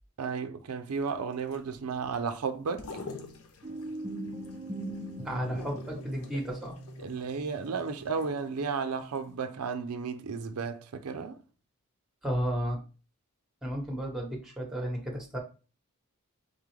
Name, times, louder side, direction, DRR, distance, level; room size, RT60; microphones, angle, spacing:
voice 1, 0.2-2.9 7.0-11.4, right 5 dB, 85° right, 0.5 m, -33 dB
sound 1, 0.9-8.8 9.1-9.2, left 3 dB, 75° left, 0.6 m, -47 dB
sound 2, 3.6-9.5, right 1 dB, 20° right, 0.4 m, -41 dB
voice 2, 5.2-6.8 12.2-12.8 13.6-15.4, equal, ahead, 0.9 m, -33 dB
3.8 x 3.7 x 3.1 m
head